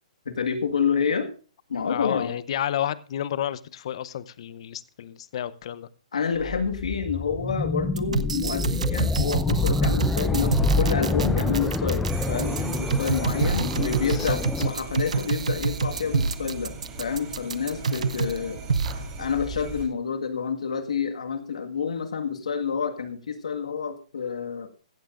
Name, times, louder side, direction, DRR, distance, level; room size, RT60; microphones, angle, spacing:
voice 1, 0.2-1.3 1.7-2.3 6.1-18.6 19.2-24.7, left 6 dB, 75° left, 7 dB, 1.7 m, -28 dB
voice 2, 1.9-5.9 14.0-14.4, left 10 dB, 55° left, 17 dB, 0.7 m, -31 dB
sound 1, 6.4-14.7, left 3 dB, 5° left, 0.5 m, -27 dB
sound 2, 8.0-18.4 18.7-18.9, right 5 dB, 80° right, 0.7 m, -27 dB
sound 3, 12.1-19.8, right 4 dB, 25° right, 3.5 m, -37 dB
15.0 x 15.0 x 2.5 m, 0.38 s
hypercardioid pair, 130°, 4 cm